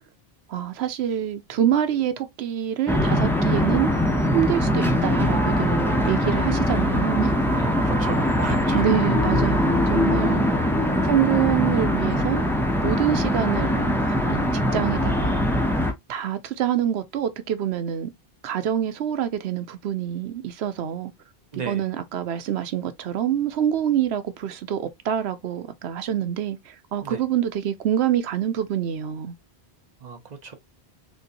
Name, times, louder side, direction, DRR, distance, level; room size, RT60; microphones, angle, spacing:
voice 1, 0.5-3.9 4.3-7.5 8.7-10.5 11.0-12.5 12.8-14.0 14.3-15.5 16.1-18.1 18.4-21.1 21.7-29.3, right 10 dB, 85° right, 0.9 m, -26 dB
sound 1, 2.9-15.9, left 1 dB, 5° left, 0.5 m, -22 dB
voice 2, 7.5-8.9 21.5-21.8 27.0-27.2 30.0-30.5, right 6 dB, 45° right, 0.9 m, -34 dB
3.7 x 2.7 x 2.5 m
omnidirectional pair, 1.1 m